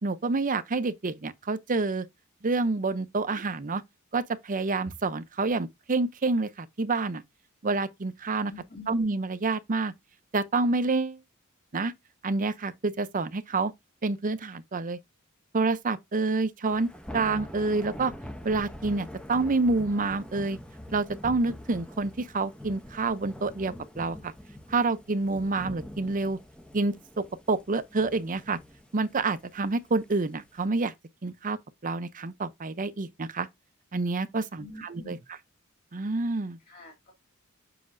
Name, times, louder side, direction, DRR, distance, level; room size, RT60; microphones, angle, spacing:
voice 1, 0.0-2.1 2.4-3.8 4.1-7.2 7.6-8.5 8.9-9.9 10.3-11.2 11.7-11.9 12.2-13.7 14.0-15.0 15.5-18.1 18.4-20.6 20.9-24.3 24.7-26.4 26.7-28.6 28.9-30.9 31.2-31.6 31.8-33.5 33.9-35.2 35.9-36.6, right 3 dB, 40° right, 0.6 m, -28 dB
voice 2, 8.5-9.0 34.6-35.2 36.6-37.1, left 2 dB, 45° left, 2.0 m, -46 dB
Thunder / Rain, 16.7-30.6, left 1 dB, 5° left, 0.7 m, -44 dB
7.4 x 5.7 x 2.6 m
head